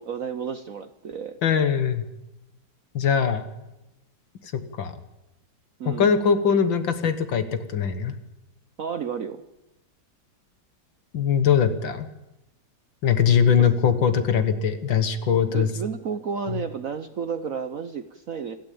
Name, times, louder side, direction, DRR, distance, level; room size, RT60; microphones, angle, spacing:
voice 1, 0.0-1.4 5.8-6.2 8.8-9.4 13.6-14.0 15.5-18.6, right 6 dB, 55° right, 10 dB, 1.0 m, -32 dB
voice 2, 1.4-2.0 2.9-3.5 4.8-4.9 5.9-7.4 7.7-8.1 11.1-12.1 13.0-15.7 16.5-16.6, left 7 dB, 65° left, 10 dB, 2.2 m, -21 dB
27.5 x 12.5 x 8.6 m, 0.95 s
omnidirectional pair, 2.3 m